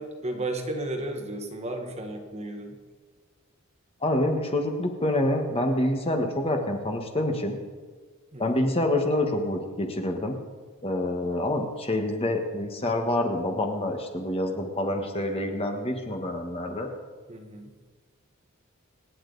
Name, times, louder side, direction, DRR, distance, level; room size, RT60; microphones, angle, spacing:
voice 1, 0.0-2.7 8.3-8.4 17.3-17.7, right 1 dB, 30° right, 4 dB, 1.4 m, -33 dB
voice 2, 4.0-7.6 8.4-10.4 10.8-16.9, left 1 dB, 25° left, 3 dB, 1.3 m, -27 dB
27.0 x 8.9 x 4.0 m, 1.5 s
head